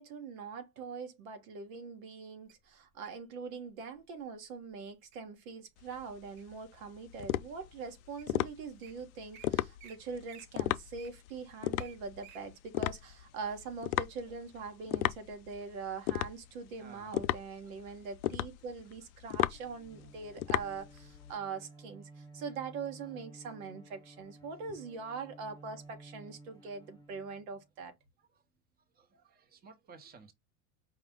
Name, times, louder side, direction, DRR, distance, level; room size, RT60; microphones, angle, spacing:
voice 1, 0.0-27.9, right 5 dB, 70° right, 1.3 m, -43 dB
Wild animals, 2.5-3.2 3.9-4.2 4.7-5.2 5.7-6.6 7.2-7.3 7.9-8.4 8.6-8.9 9.3-9.5 9.8-10.0 10.3-12.4 12.9-13.0, right 10 dB, 55° right, 1.0 m, -55 dB
sound 1, 5.8-21.4, left 15 dB, 75° left, 0.5 m, -36 dB
voice 2, 16.8-17.2 17.5-18.1 19.5-19.6 25.0-25.3 26.6-26.7 28.2-28.4 28.9-30.3, right 5 dB, 20° right, 1.0 m, -57 dB
Bowed string instrument, 19.4-27.8, right 2 dB, 10° left, 0.9 m, -55 dB
4.8 x 2.4 x 3.6 m
supercardioid pair, 110°, 43 cm